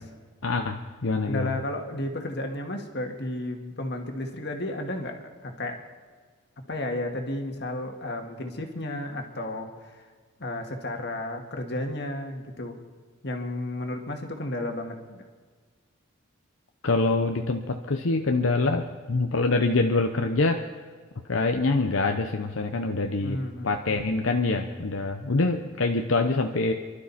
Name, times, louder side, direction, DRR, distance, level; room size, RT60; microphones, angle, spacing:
voice 1, 0.4-1.6 16.8-20.6 21.3-23.4 23.6-26.7, left 3 dB, 80° left, 4 dB, 0.8 m, -25 dB
voice 2, 1.3-5.8 6.7-10.0 10.4-12.8 13.2-15.2 23.2-23.8, left 1 dB, 55° left, 3 dB, 2.0 m, -33 dB
28.5 x 12.0 x 4.2 m, 1.5 s
head